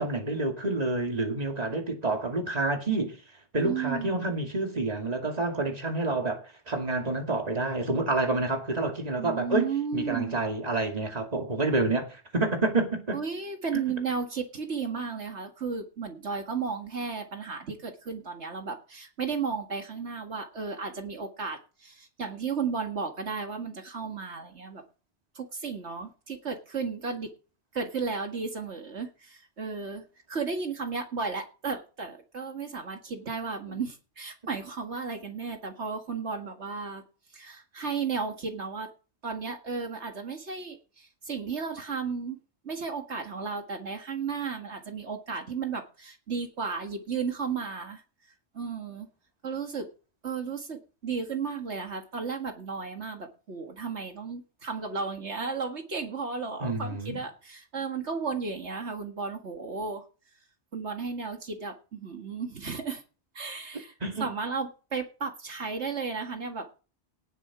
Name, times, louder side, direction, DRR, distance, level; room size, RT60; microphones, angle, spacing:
voice 1, 0.0-3.2 3.5-13.2 13.7-13.8 33.7-33.8 56.6-57.2 64.0-64.3, right 2 dB, 35° right, 2.6 m, -28 dB
voice 2, 3.6-4.3 9.2-10.4 13.1-24.8 25.3-27.3 27.7-37.0 37.3-38.9 39.2-48.0 48.5-49.1 49.4-49.9 50.2-60.1 60.7-63.0 63.3-63.9 64.2-66.7, right 5 dB, 80° right, 2.2 m, -34 dB
18.0 x 7.2 x 4.9 m
omnidirectional pair, 1.2 m